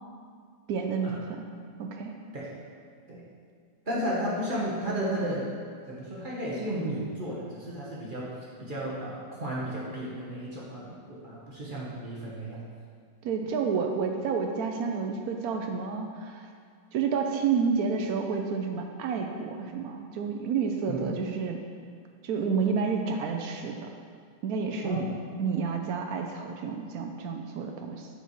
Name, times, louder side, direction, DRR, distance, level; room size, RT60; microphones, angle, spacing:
voice 1, 0.7-1.5 1.8-2.2 13.2-16.5 16.9-21.6 22.2-24.0 24.4-25.1 25.4-28.1, right 5 dB, 70° right, 3 dB, 0.9 m, -30 dB
voice 2, 3.9-5.4 5.9-8.3 8.6-12.6 20.9-21.2 24.8-25.0, right 1 dB, 35° right, -7 dB, 0.9 m, -33 dB
7.9 x 5.4 x 3.1 m, 2.1 s
omnidirectional pair, 2.0 m